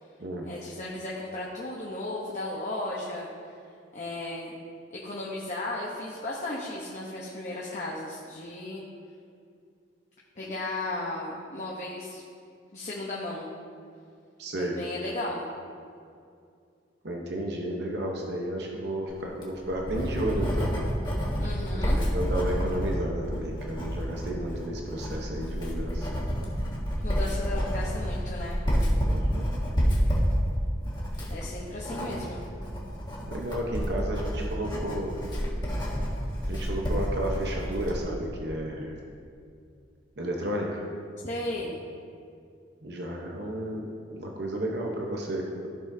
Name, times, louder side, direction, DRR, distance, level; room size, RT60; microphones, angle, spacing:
voice 1, 0.5-3.3 3.9-4.5 4.9-8.8 10.4-12.2 12.7-13.5 14.6-15.5 21.4-22.0 27.0-28.6 31.3-32.4 41.2-41.8, left 2 dB, 40° left, -4 dB, 0.9 m, -35 dB
voice 2, 14.4-14.7 17.0-20.7 22.0-26.1 29.0-29.4 31.9-32.1 33.3-35.2 36.5-38.9 40.2-40.8 42.8-45.7, right 1 dB, 60° right, 0 dB, 1.0 m, -32 dB
Writing, 19.2-38.0, equal, 25° left, 1.7 m, -29 dB
15.0 x 6.2 x 2.7 m, 2.4 s
head